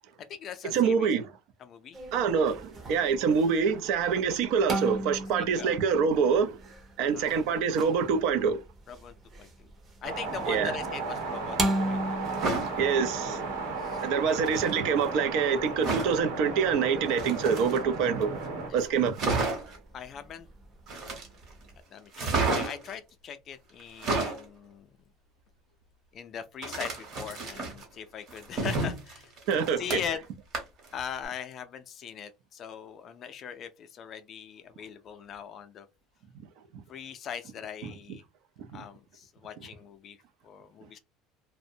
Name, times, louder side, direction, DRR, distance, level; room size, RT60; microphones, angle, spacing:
voice 1, 0.2-1.1 1.6-2.0 5.4-5.8 7.0-7.3 8.9-9.7 10.0-11.6 11.8-12.4 13.3-13.5 13.8-14.1 19.9-20.5 21.9-24.9 26.1-29.3 29.8-30.2 30.9-35.9 36.9-38.2 38.7-40.2 40.4-41.0, left 8 dB, 35° left, 0.4 m, -40 dB
voice 2, 0.7-1.3 2.1-6.6 7.0-8.6 10.5-10.8 12.8-13.5 14.0-18.4 18.7-19.2 29.5-30.0 37.8-37.9 38.7-38.8, right 6 dB, 65° right, 0.4 m, -26 dB
sound 1, 1.9-21.8, right 1 dB, 20° right, 0.6 m, -39 dB
sound 2, 10.0-18.7, right 3 dB, 85° right, 0.9 m, -35 dB
sound 3, 12.2-12.7 14.3-14.7 15.8-16.2 17.1-18.0 18.5-18.6 18.8-18.9 19.1-19.8 20.9-21.5 22.1-22.9 23.8-24.4 26.6-27.8 28.3-30.2 30.5-30.9 31.2-31.3, right 3 dB, 40° right, 1.0 m, -31 dB
2.5 x 2.1 x 2.6 m
cardioid pair, 150°, 0 cm